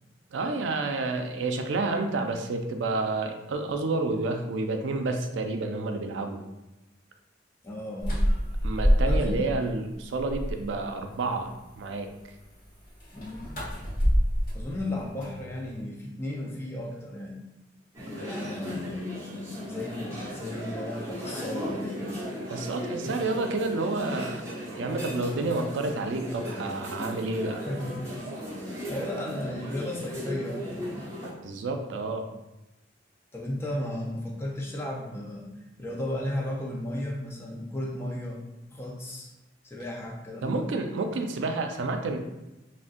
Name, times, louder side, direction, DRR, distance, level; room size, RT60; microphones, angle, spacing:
voice 1, 0.3-6.4 8.6-12.1 22.5-24.4 24.7-27.6 31.4-32.3 40.4-42.2, right 3 dB, 85° right, 5 dB, 0.4 m, -29 dB
voice 2, 7.6-8.3 9.0-9.5 13.1-13.8 14.5-17.4 18.0-19.0 19.6-22.2 23.0-23.1 27.6-28.1 28.4-31.1 33.3-35.5 35.8-38.4 38.7-39.3 39.6-40.7, left 1 dB, 15° left, -2 dB, 0.4 m, -35 dB
sound 1, 8.0-9.6 9.9-10.8 13.0-15.8, equal, 50° left, 0.9 m, -26 dB
sound 2, 17.9-31.3, equal, 15° right, 0.9 m, -37 dB
3.7 x 2.1 x 2.5 m, 0.99 s
head